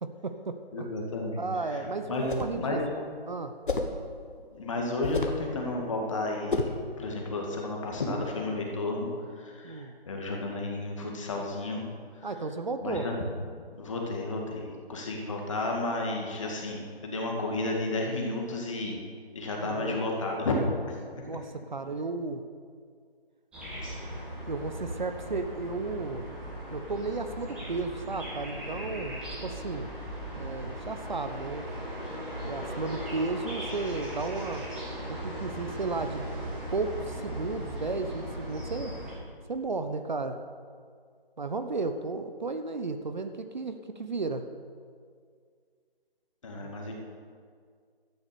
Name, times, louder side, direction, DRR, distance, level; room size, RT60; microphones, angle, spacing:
voice 1, 0.0-0.9 1.4-3.0 3.3-3.5 9.6-9.9 12.2-13.1 19.6-20.0 21.3-22.4 24.5-26.3 26.7-29.9 30.4-31.6 32.4-34.6 35.1-36.3 36.7-39.0 39.5-40.4 41.4-44.5 46.6-46.7, right 3 dB, 50° right, 8 dB, 0.8 m, -34 dB
voice 2, 0.7-1.4 1.7-2.8 4.5-6.7 7.0-9.1 9.4-11.8 12.2-12.3 12.8-13.2 13.7-19.0 19.3-20.6 20.9-21.0 46.4-46.9, left 2 dB, 30° left, 0 dB, 2.2 m, -32 dB
sound 1, 2.1-2.6 3.7-4.0 5.0-5.5 6.5-6.8, left 3 dB, 55° left, 1.5 m, -30 dB
sound 2, 23.5-39.1, equal, 5° right, 1.6 m, -38 dB
11.5 x 9.7 x 6.9 m, 2.1 s
figure-of-eight pair, 165°, 31 cm